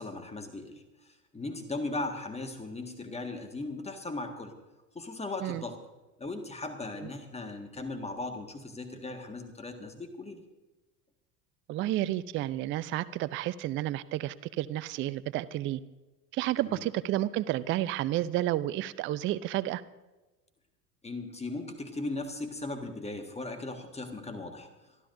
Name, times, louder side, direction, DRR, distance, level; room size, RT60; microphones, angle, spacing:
voice 1, 0.0-4.5 5.0-5.8 6.2-10.4 16.6-16.8 21.0-24.7, left 2 dB, 15° left, 6 dB, 1.7 m, -38 dB
voice 2, 11.7-15.8 16.3-19.8, right 14 dB, 25° right, 15 dB, 0.5 m, -31 dB
26.5 x 13.0 x 2.7 m, 1.1 s
figure-of-eight pair, 85°, 49 cm